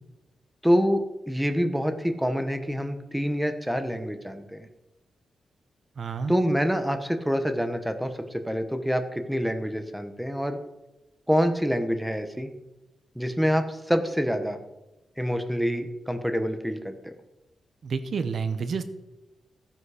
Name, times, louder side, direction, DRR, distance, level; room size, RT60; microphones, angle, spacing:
voice 1, 0.6-4.7 6.3-10.6 11.3-12.5 13.1-14.6 15.2-17.1, equal, ahead, 7 dB, 1.1 m, -26 dB
voice 2, 6.0-6.4 17.8-18.8, right 5 dB, 50° right, 10 dB, 0.9 m, -29 dB
15.5 x 9.8 x 5.0 m, 0.99 s
wide cardioid pair, 160°, 0 cm